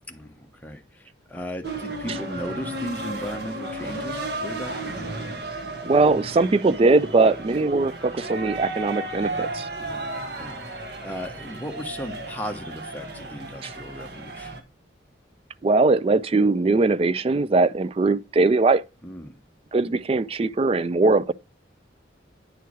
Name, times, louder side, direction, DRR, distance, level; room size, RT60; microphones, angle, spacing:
voice 1, 0.1-5.1 9.8-14.5 19.0-19.4, equal, 10° left, 0.9 m, -36 dB
sound 1, 1.6-14.6, right 2 dB, 60° right, 1.4 m, -34 dB
voice 2, 5.8-9.7 13.6-13.7 15.6-18.8 19.7-21.3, right 3 dB, 30° right, 0.3 m, -20 dB
9.3 x 4.6 x 4.7 m
head